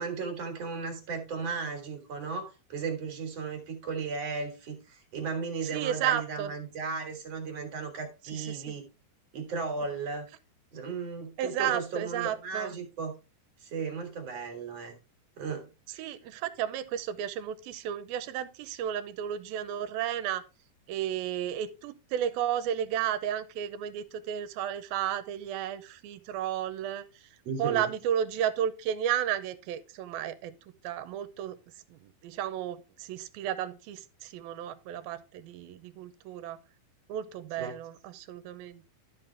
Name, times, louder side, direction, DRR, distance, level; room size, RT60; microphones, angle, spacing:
voice 1, 0.0-8.9 9.3-10.3 10.7-13.1 13.6-15.0 15.4-16.0 27.4-27.9 37.6-37.7, right 5 dB, 50° right, 2.5 m, -35 dB
voice 2, 5.7-6.5 8.3-8.6 11.4-12.7 16.0-20.4 20.9-27.0 27.6-30.5 30.8-31.6 31.9-36.6 37.1-38.9, right 10 dB, 80° right, 2.5 m, -33 dB
12.5 x 5.5 x 3.4 m
omnidirectional pair, 4.3 m